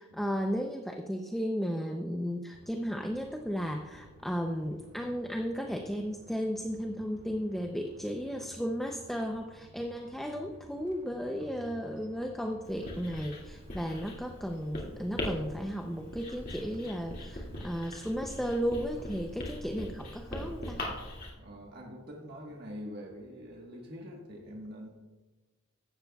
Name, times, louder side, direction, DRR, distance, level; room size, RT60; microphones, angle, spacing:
voice 1, 0.0-20.8, equal, ahead, 2 dB, 0.5 m, -34 dB
sound 1, 2.5-20.7, right 1 dB, 80° right, 2.2 m, -54 dB
Writing, 12.7-21.3, left 1 dB, 45° left, 2.3 m, -41 dB
voice 2, 21.4-24.9, equal, 50° right, -2 dB, 1.4 m, -44 dB
15.5 x 12.0 x 2.3 m, 1.2 s
head